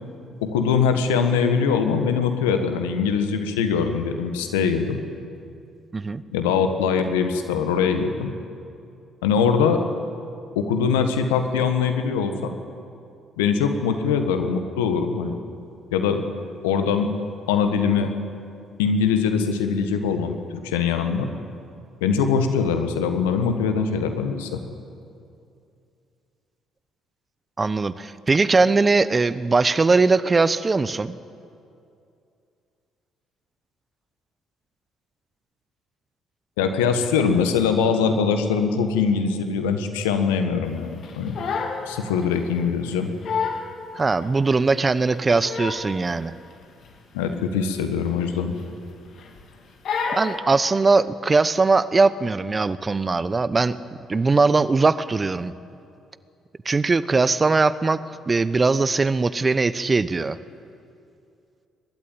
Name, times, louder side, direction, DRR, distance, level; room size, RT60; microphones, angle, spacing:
voice 1, 0.4-5.0 6.3-8.3 9.2-9.8 10.5-12.5 13.4-15.4 15.9-16.2 16.6-17.1 17.5-18.1 18.8-21.3 22.0-24.6 36.6-41.4 41.9-43.1 47.1-48.5, left 6 dB, 80° left, 7 dB, 1.5 m, -22 dB
voice 2, 27.6-31.1 44.0-46.3 50.1-53.8 54.1-55.5 56.6-58.0 58.3-60.4, right 3 dB, 30° right, 15 dB, 0.8 m, -20 dB
Crying sobbing, 41.0-41.9 42.2-42.4 42.9-43.0 43.2-43.7 44.2-44.3 45.1-45.9 46.2-46.5 46.8-46.9 47.3-47.5 48.3-48.8 49.2-49.4 49.8-50.4, left 5 dB, 60° left, 2.6 m, -29 dB
22.5 x 12.5 x 9.2 m, 2.5 s
hypercardioid pair, 50°, 0 cm